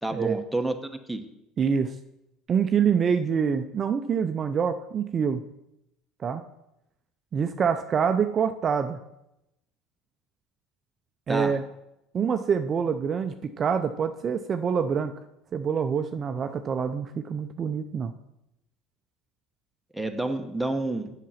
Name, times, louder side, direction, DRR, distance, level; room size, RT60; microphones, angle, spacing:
voice 1, 0.0-1.2 11.3-11.6 19.9-21.1, right 2 dB, ahead, 5 dB, 0.9 m, -29 dB
voice 2, 1.6-2.0 2.5-5.4 6.2-6.4 7.3-9.0 11.3-11.6 12.1-15.1 15.5-18.1, right 6 dB, 40° right, 8 dB, 0.5 m, -26 dB
7.5 x 5.9 x 5.7 m, 0.86 s
supercardioid pair, 95°, 0 cm